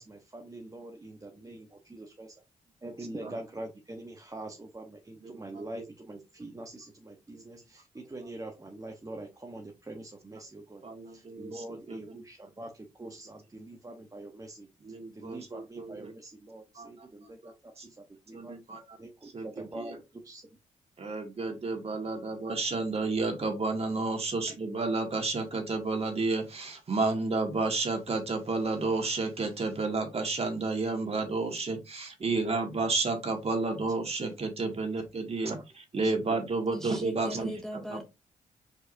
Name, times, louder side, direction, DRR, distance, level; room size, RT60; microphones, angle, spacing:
voice 1, 0.0-2.4 2.8-14.7 15.1-18.6 19.0-20.6 35.5-35.6 36.0-36.4, right 1 dB, 25° right, 1.0 m, -44 dB
voice 2, 5.2-5.8 7.3-7.4 10.8-12.2 13.0-13.1 14.8-16.1 16.8-16.9 17.4-17.9 18.3-19.0 19.2-20.0 21.0-37.5 37.9-38.0, right 3 dB, 45° right, 1.8 m, -31 dB
voice 3, 36.7-38.0, left 1 dB, 5° left, 0.9 m, -39 dB
4.5 x 4.5 x 2.6 m
supercardioid pair, 50°, 15 cm